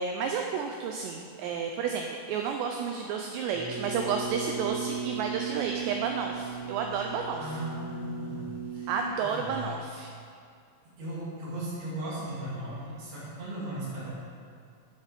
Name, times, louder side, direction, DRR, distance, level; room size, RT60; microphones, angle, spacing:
voice 1, 0.0-7.6 8.9-10.1, right 6 dB, 90° right, 3 dB, 2.4 m, -31 dB
sound 1, 3.5-9.0, right 5 dB, 35° right, 2.7 m, -37 dB
voice 2, 7.4-8.9 9.2-9.7 11.0-14.1, right 1 dB, 55° right, -8 dB, 4.3 m, -37 dB
12.5 x 7.5 x 5.2 m, 2.3 s
omnidirectional pair, 5.7 m